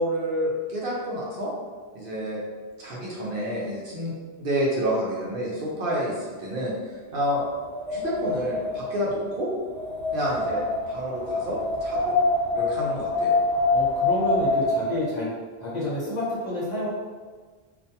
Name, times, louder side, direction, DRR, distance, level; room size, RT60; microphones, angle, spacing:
voice 1, 0.0-1.5 1.9-2.4 2.8-4.1 4.4-6.7 7.1-7.4 7.9-9.5 10.1-10.6 10.9-12.1 12.5-13.4, equal, 60° right, -5 dB, 0.7 m, -29 dB
Wind, 7.1-15.0, left 2 dB, 90° right, 1.1 m, -26 dB
voice 2, 13.7-15.3 15.6-16.9, left 1 dB, 45° left, -8 dB, 0.8 m, -29 dB
2.4 x 2.2 x 2.7 m, 1.5 s
omnidirectional pair, 1.1 m